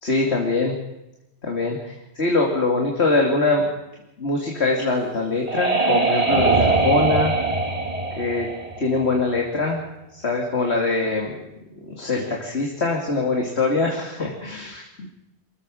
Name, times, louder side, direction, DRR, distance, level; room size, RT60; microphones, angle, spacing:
voice 1, 0.0-0.7 1.4-3.7 4.2-7.3 8.2-8.5 8.8-9.8 10.1-11.3 11.9-15.1, left 3 dB, 65° left, 0 dB, 2.7 m, -23 dB
sound 1, 4.9-9.5, right 3 dB, 30° right, 2.3 m, -22 dB
27.0 x 15.0 x 6.3 m, 0.94 s
omnidirectional pair, 1.2 m